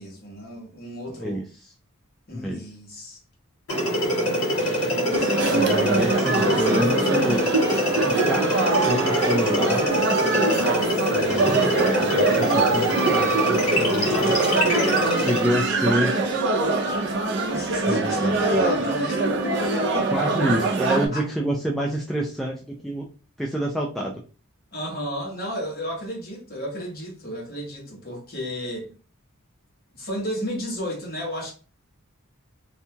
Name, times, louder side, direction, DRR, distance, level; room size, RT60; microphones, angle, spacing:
voice 1, 0.0-1.4 2.3-3.2 17.5-20.1 20.9-21.2 24.7-28.9 29.9-31.5, equal, 45° left, 1.2 m, -32 dB
voice 2, 1.2-1.7 2.3-2.6 5.5-7.5 7.9-9.9 11.1-14.4 15.1-16.2 17.9-18.6 20.1-23.1 23.4-24.2, equal, ahead, 0.3 m, -28 dB
sound 1, 3.7-15.5, equal, 90° left, 1.4 m, -24 dB
sound 2, 5.1-21.1, right 2 dB, 55° right, 0.5 m, -23 dB
2.7 x 2.3 x 2.7 m
head